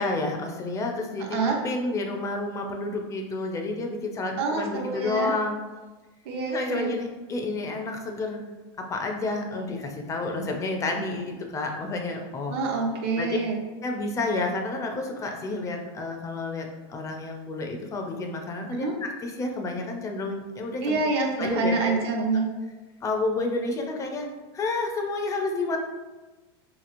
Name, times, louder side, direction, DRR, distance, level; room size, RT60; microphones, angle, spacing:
voice 1, 0.0-1.4 1.6-5.6 6.5-8.4 8.8-12.6 13.2-13.4 13.8-21.0 21.4-22.0 23.0-24.3 24.5-25.8, left 2 dB, 25° left, 3 dB, 0.4 m, -30 dB
voice 2, 4.4-5.3 6.3-6.9 12.5-13.6 18.8-18.9 20.8-22.5, right 3 dB, 75° right, 1 dB, 0.6 m, -26 dB
2.9 x 2.8 x 2.5 m, 1.2 s
supercardioid pair, 125°, 14 cm